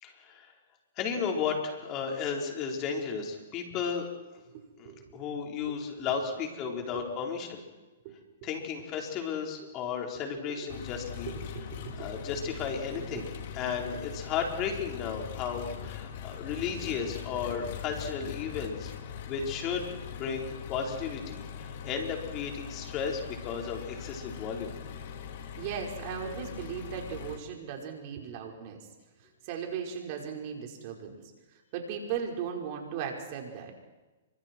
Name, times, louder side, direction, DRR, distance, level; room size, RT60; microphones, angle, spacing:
voice 1, 0.0-0.5 1.0-4.1 4.8-7.6 8.4-11.3 12.0-13.3 13.5-18.9 19.3-24.7, left 6 dB, 35° left, 1 dB, 4.7 m, -34 dB
voice 2, 4.5-5.8 6.6-7.0 8.0-8.1 10.3-10.8 11.3-12.1 12.5-12.6 12.9-13.2 16.8-17.0 25.6-28.9 29.4-31.2 31.7-33.7, right 7 dB, 45° right, 1 dB, 5.2 m, -38 dB
Engine, 10.7-27.4, left 8 dB, 55° left, 2.6 m, -41 dB
28.5 x 24.5 x 4.7 m, 1.2 s
hypercardioid pair, 135°, 0 cm